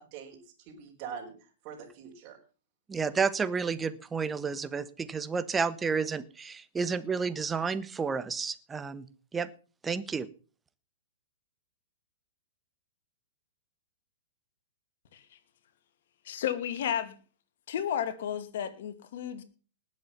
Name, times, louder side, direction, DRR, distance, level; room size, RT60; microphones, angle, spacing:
voice 1, 0.0-2.4, right 7 dB, 40° right, 4.5 m, -44 dB
voice 2, 2.9-9.1 9.3-9.5 9.8-10.3, right 5 dB, 15° right, 1.2 m, -31 dB
voice 3, 16.3-17.2 17.7-19.4, left 9 dB, 60° left, 2.3 m, -32 dB
19.5 x 7.8 x 5.7 m
hypercardioid pair, 115°, 0 cm